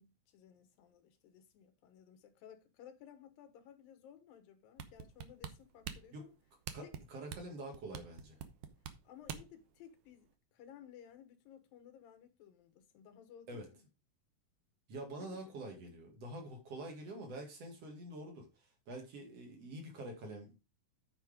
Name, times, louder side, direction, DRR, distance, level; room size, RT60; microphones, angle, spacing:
voice 1, 0.0-6.4 6.8-6.9 9.0-13.8 15.2-15.4, left 9 dB, 85° left, 3.0 m, -57 dB
sound 1, 4.8-9.6 10.1-10.2, right 8 dB, 75° right, 1.4 m, -45 dB
voice 2, 6.7-8.4 13.5-13.7 14.9-20.6, right 1 dB, 50° right, 2.9 m, -46 dB
9.4 x 5.1 x 5.0 m
omnidirectional pair, 4.0 m